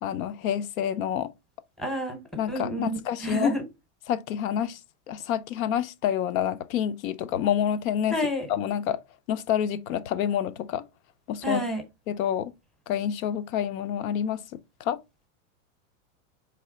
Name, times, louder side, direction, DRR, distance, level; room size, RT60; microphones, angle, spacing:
voice 1, 0.0-1.3 2.4-3.5 4.1-4.8 5.1-8.2 8.5-9.0 9.3-10.8 11.3-11.6 12.1-12.5 12.9-14.4 14.8-15.0, left 9 dB, 80° left, 0.7 m, -28 dB
voice 2, 1.8-2.2 2.5-3.6 8.1-8.5 11.4-11.8, equal, ahead, 0.8 m, -29 dB
4.1 x 3.3 x 3.7 m
supercardioid pair, 150°, 41 cm